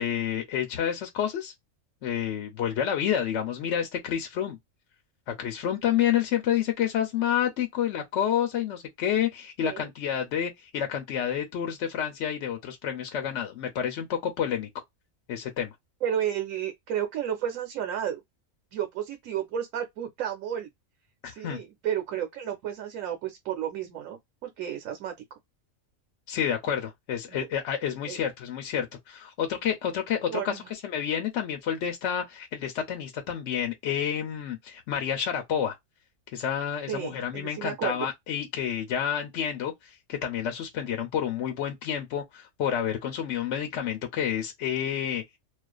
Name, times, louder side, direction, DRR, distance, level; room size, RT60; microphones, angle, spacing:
voice 1, 0.0-1.5 2.0-4.6 5.3-14.7 15.3-15.7 21.2-21.6 26.3-35.7 36.3-45.4, left 9 dB, 65° left, 0.9 m, -29 dB
voice 2, 16.0-18.2 18.7-20.7 21.3-25.1 27.3-27.4 28.1-28.2 30.3-30.7 36.9-38.1, right 9 dB, 90° right, 1.0 m, -32 dB
2.4 x 2.4 x 2.3 m
omnidirectional pair, 1.4 m